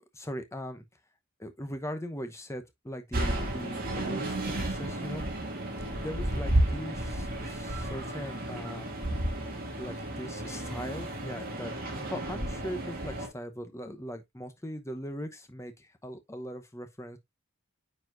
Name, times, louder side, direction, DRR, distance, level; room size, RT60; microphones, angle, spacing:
voice 1, 0.1-0.8 1.4-5.3 5.9-8.9 9.8-11.7 12.1-17.2, equal, 15° left, 0.9 m, -40 dB
sound 1, 3.1-13.3, right 1 dB, 45° right, 2.5 m, -32 dB
sound 2, 3.9-6.7, right 3 dB, 75° right, 0.7 m, -39 dB
9.3 x 4.2 x 2.6 m
head